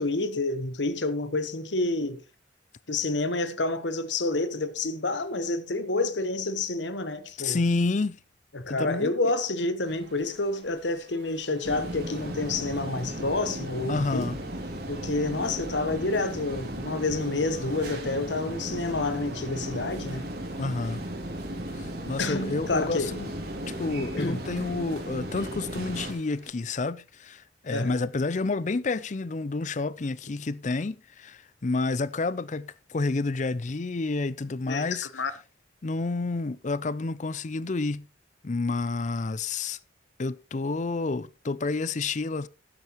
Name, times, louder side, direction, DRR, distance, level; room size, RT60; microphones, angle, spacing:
voice 1, 0.0-2.2 2.9-7.6 8.5-14.3 14.9-20.3 22.2-23.1 24.2-24.4 27.7-28.0 34.7-34.8 35.1-35.3, left 2 dB, 80° left, 1.1 m, -29 dB
voice 2, 7.4-8.2 8.7-9.2 13.9-14.4 20.6-21.0 21.8-23.3 23.7-35.1 35.8-38.1 38.4-39.8 40.2-42.5, left 3 dB, 40° left, 0.5 m, -29 dB
sound 1, 9.8-26.5, right 2 dB, 80° right, 3.7 m, -52 dB
sound 2, 11.6-26.1, right 1 dB, 55° right, 2.6 m, -36 dB
12.5 x 11.0 x 3.0 m
head